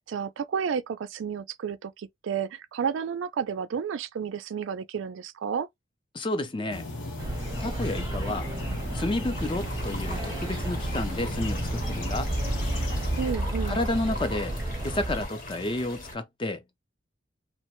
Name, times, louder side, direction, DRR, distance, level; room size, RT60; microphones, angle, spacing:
voice 1, 0.0-5.7 13.2-13.9, right 7 dB, 80° right, 0.3 m, -31 dB
voice 2, 6.1-6.8 7.6-8.5 8.9-12.3 13.6-14.5 14.8-16.6, left 2 dB, 25° left, 0.4 m, -31 dB
sound 1, 6.7-13.3, left 2 dB, 80° left, 1.0 m, -37 dB
sound 2, 7.2-15.2, right 1 dB, 15° right, 0.6 m, -32 dB
sound 3, 9.3-16.1, left 1 dB, 45° left, 0.9 m, -41 dB
2.8 x 2.1 x 2.9 m
head